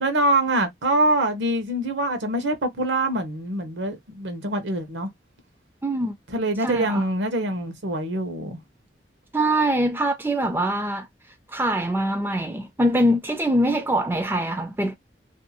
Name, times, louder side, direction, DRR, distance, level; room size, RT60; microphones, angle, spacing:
voice 1, 0.0-5.1 6.3-8.6, right 1 dB, 90° right, 0.9 m, -24 dB
voice 2, 5.8-6.2 6.6-7.0 9.3-11.1 11.5-15.0, right 1 dB, 10° right, 0.3 m, -23 dB
2.6 x 2.2 x 2.8 m
head